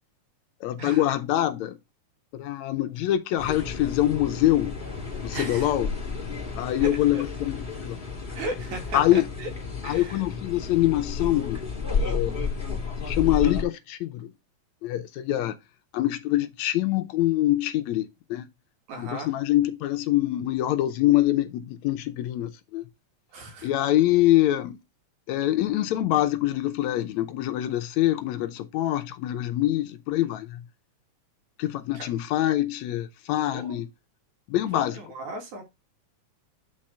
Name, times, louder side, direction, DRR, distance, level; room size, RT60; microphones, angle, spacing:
voice 1, 0.6-1.8 2.3-4.8 5.2-5.9 6.6-8.0 8.9-9.3 9.8-11.6 11.9-12.4 13.0-14.3 14.8-15.6 15.9-18.5 19.0-22.8 23.6-24.8 25.3-30.6 31.6-33.9 34.5-35.0, left 14 dB, 75° left, 1.9 m, -24 dB
sound 1, 3.4-13.6, left 4 dB, 15° left, 2.5 m, -32 dB
voice 2, 5.3-5.7 6.8-6.9 7.1-7.2 8.3-9.5 9.8-10.2 18.9-19.3 23.3-23.7 31.9-32.1 33.5-33.8 34.7-35.6, right 1 dB, 75° right, 3.3 m, -36 dB
8.7 x 4.4 x 4.3 m
omnidirectional pair, 3.4 m